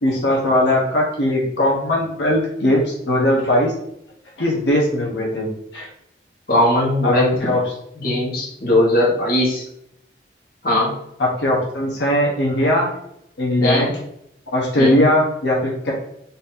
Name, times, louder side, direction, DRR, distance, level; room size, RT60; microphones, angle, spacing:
voice 1, 0.0-3.7 4.4-5.5 5.7-5.9 7.0-7.1 7.4-7.6 11.2-12.9 13.4-13.9 14.5-15.9, left 1 dB, 85° left, -3 dB, 1.0 m, -19 dB
voice 2, 6.5-7.4 8.0-9.6 10.6-10.9 13.6-13.9 14.8-15.0, left 1 dB, 50° left, -4 dB, 1.3 m, -18 dB
4.1 x 2.7 x 4.1 m, 0.75 s
head